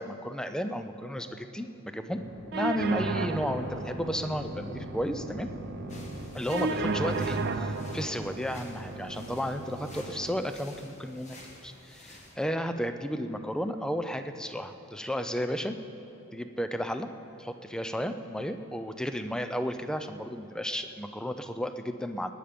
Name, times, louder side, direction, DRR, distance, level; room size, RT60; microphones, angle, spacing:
voice 1, 0.0-2.2 2.5-5.5 6.3-11.4 11.6-15.8 16.3-17.1 17.4-22.3, equal, 5° left, 8 dB, 0.4 m, -33 dB
Thunder, 1.7-12.4 12.8-12.9 13.3-14.8 15.0-15.2 15.5-16.4 16.8-16.9 17.2-17.3 19.7-20.2, equal, 60° left, 1.9 m, -47 dB
sound 1, 2.5-10.5, right 3 dB, 45° right, 0.6 m, -34 dB
sound 2, 5.9-12.3, left 1 dB, 30° left, 1.6 m, -51 dB
18.0 x 10.5 x 5.1 m, 3.0 s
head